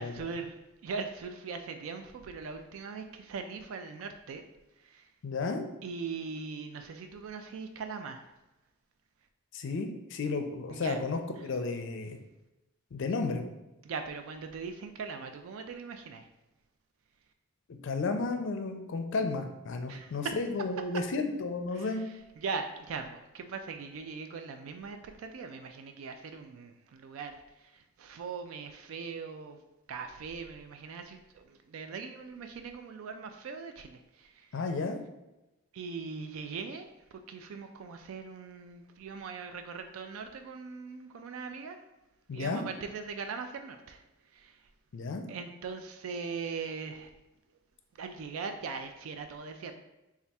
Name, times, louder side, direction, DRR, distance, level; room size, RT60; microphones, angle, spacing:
voice 1, 0.0-4.4 4.8-5.1 5.8-8.3 10.7-11.0 13.8-16.3 19.9-20.3 21.8-21.9 22.4-29.6 29.9-34.5 35.7-36.9 37.3-41.8 42.3-44.0 44.3-44.6 45.3-47.1 48.0-49.7, right 5 dB, 75° right, 6 dB, 0.3 m, -40 dB
voice 2, 5.2-5.7 9.5-12.2 12.9-13.5 17.7-22.0 34.5-35.0 42.3-42.6 44.9-45.3, left 3 dB, 60° left, 6 dB, 0.4 m, -33 dB
3.3 x 2.4 x 4.1 m, 0.98 s
head